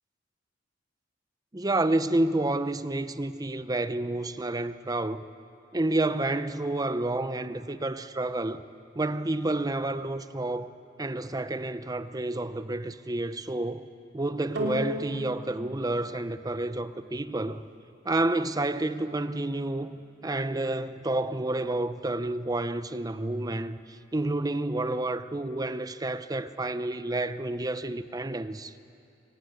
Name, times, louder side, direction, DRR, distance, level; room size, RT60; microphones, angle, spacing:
voice 1, 1.5-5.2 5.7-8.6 8.9-10.7 11.0-13.9 14.1-17.6 18.0-20.0 20.2-28.7, right 2 dB, 20° right, 0.6 m, -29 dB
sound 1, 14.6-23.1 23.8-23.9, left 1 dB, 65° right, 3.3 m, -41 dB
25.0 x 17.0 x 9.6 m
head